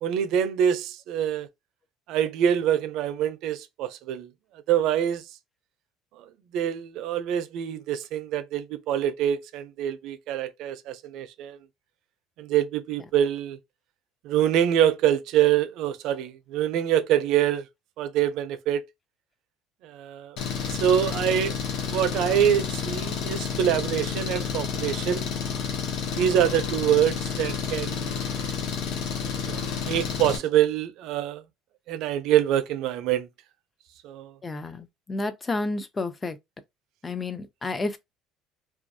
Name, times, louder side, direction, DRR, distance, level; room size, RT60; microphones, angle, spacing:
voice 1, 0.0-1.5 2.1-4.3 4.7-5.2 6.5-11.6 12.4-13.6 14.2-17.7 18.0-18.8 19.8-20.4 20.8-21.6 21.9-25.3 26.2-28.2 29.2-31.4 31.9-33.3 34.0-34.3, right 10 dB, 60° right, 0.4 m, -25 dB
Engine, 20.4-30.4, left 6 dB, 65° left, 0.7 m, -30 dB
voice 2, 34.4-36.4 37.0-38.0, left 2 dB, 15° left, 0.3 m, -31 dB
2.4 x 2.3 x 2.6 m
cardioid pair, 155°, 0 cm